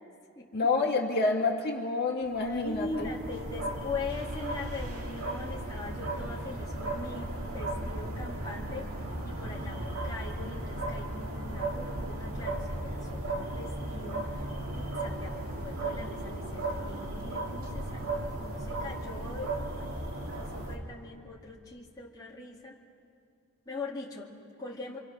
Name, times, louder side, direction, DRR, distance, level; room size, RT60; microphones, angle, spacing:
voice 1, 0.5-3.1, left 3 dB, 50° left, 0 dB, 2.2 m, -28 dB
sound 1, 2.2-20.7, right 1 dB, 70° right, 3.1 m, -36 dB
voice 2, 2.5-8.9 9.2-14.3 14.7-20.0 20.3-22.8 23.7-25.0, left 3 dB, 20° left, -4 dB, 2.3 m, -41 dB
26.5 x 25.5 x 6.1 m, 2.5 s
head